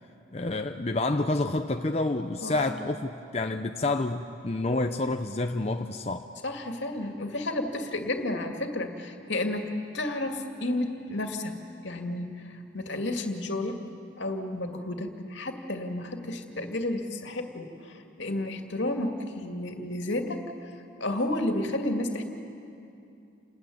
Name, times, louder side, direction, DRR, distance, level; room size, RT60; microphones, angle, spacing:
voice 1, 0.3-6.3, left 2 dB, 30° left, 5 dB, 0.6 m, -28 dB
voice 2, 2.4-2.8 6.4-11.5 11.8-12.3 12.7-13.8 14.2-20.5 21.0-22.2, left 1 dB, 70° left, 4 dB, 2.2 m, -31 dB
29.0 x 20.0 x 9.3 m, 2.8 s
head